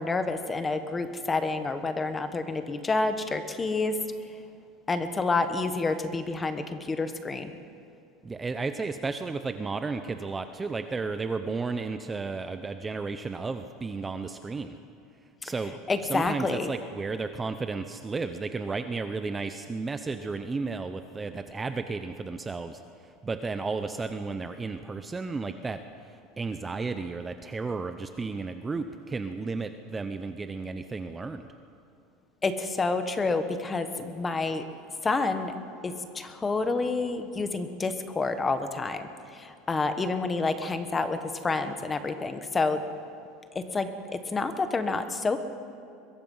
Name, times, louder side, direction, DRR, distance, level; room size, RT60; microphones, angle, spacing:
voice 1, 0.0-4.0 4.9-7.5 15.4-15.5 15.9-16.7 32.4-34.6 35.0-35.5 35.8-42.8 43.5-45.4, left 3 dB, 15° left, 9 dB, 1.3 m, -29 dB
voice 2, 8.2-14.8 15.4-25.8 26.0-31.4, right 4 dB, 15° right, 9 dB, 0.7 m, -33 dB
22.5 x 22.0 x 5.6 m, 2.5 s
supercardioid pair, 155°, 0 cm